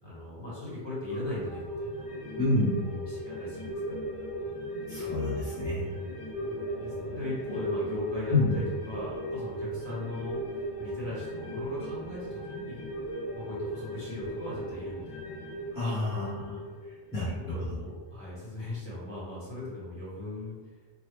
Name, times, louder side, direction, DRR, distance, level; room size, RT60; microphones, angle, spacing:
voice 1, 0.0-2.0 3.1-4.0 6.4-10.4 10.8-12.8 13.3-15.1 17.5-20.6, left 2 dB, 25° left, -10 dB, 1.3 m, -38 dB
sound 1, 1.0-17.8 18.2-18.3, right 1 dB, 85° left, 1.5 m, -37 dB
voice 2, 2.4-2.8 4.9-5.9 8.3-8.6 15.7-16.6 17.1-17.6, left 2 dB, 5° right, -12 dB, 0.9 m, -28 dB
3.0 x 2.2 x 3.3 m, 1.3 s
omnidirectional pair, 1.1 m